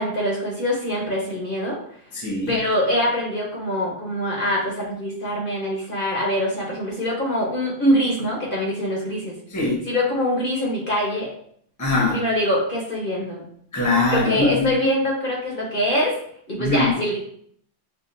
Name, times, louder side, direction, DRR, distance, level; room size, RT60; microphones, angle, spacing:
voice 1, 0.0-1.8 2.5-9.3 9.8-11.3 12.1-13.4 14.1-16.1 16.5-17.2, equal, 45° left, -3 dB, 1.1 m, -24 dB
voice 2, 2.1-2.5 9.5-9.8 11.8-12.2 13.7-14.7 16.6-16.9, left 2 dB, 15° left, -3 dB, 0.9 m, -21 dB
5.8 x 2.5 x 2.6 m, 0.62 s
omnidirectional pair, 1.3 m